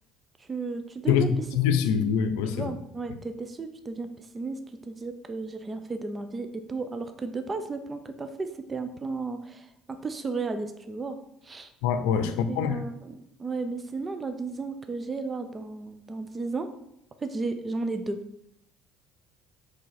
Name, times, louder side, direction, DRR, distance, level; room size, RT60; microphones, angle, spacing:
voice 1, 0.4-1.3 2.5-11.2 11.4-11.7 12.2-16.7 17.2-18.2, right 3 dB, 30° right, 8 dB, 0.7 m, -34 dB
voice 2, 1.6-2.7 11.8-12.8, left 8 dB, 80° left, 10 dB, 0.6 m, -24 dB
5.1 x 4.2 x 5.9 m, 0.79 s
hypercardioid pair, 70°, 0 cm